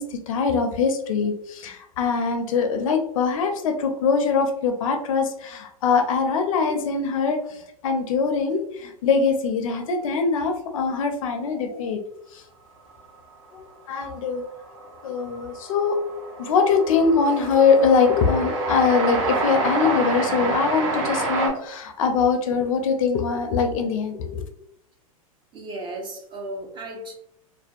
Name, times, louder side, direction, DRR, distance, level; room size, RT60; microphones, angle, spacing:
voice 1, 0.0-12.0 12.3-12.4 13.5-14.4 15.0-16.0 16.4-24.4, left 5 dB, 65° left, 6 dB, 0.4 m, -22 dB
Train, 14.1-14.2 14.4-21.5, right 2 dB, 60° right, 0.7 m, -27 dB
voice 2, 25.5-27.1, right 1 dB, 25° right, 2 dB, 0.5 m, -35 dB
2.5 x 2.1 x 2.3 m, 0.76 s
hypercardioid pair, 100°, 19 cm